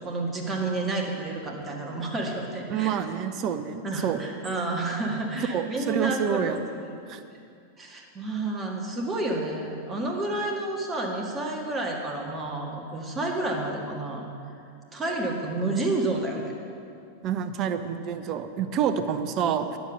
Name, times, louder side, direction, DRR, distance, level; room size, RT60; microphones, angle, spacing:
voice 1, 0.0-2.9 3.8-7.0 7.8-14.2 14.9-16.5, right 2 dB, 20° right, 0 dB, 1.7 m, -30 dB
voice 2, 2.7-4.2 5.5-6.6 7.1-7.2 17.2-19.8, right 8 dB, 35° right, 10 dB, 0.6 m, -28 dB
9.9 x 7.1 x 6.4 m, 2.5 s
figure-of-eight pair, 90°, 0 cm